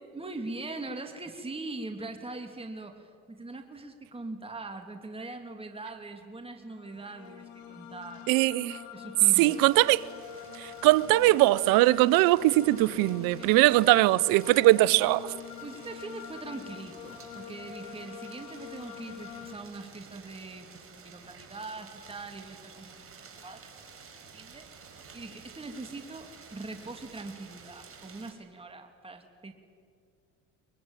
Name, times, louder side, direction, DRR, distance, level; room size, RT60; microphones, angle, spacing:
voice 1, 0.1-8.3 8.9-9.6 12.6-13.6 15.6-23.6 24.3-24.7 25.1-29.5, right 2 dB, 15° right, 2.8 m, -42 dB
sound 1, 6.7-19.6, left 9 dB, 80° left, 2.6 m, -45 dB
voice 2, 8.3-8.8 9.4-10.0 10.6-15.4, right 18 dB, 70° right, 0.8 m, -21 dB
sound 2, 9.4-28.3, right 5 dB, 40° right, 5.1 m, -52 dB
23.0 x 22.5 x 9.0 m
supercardioid pair, 80°, 35 cm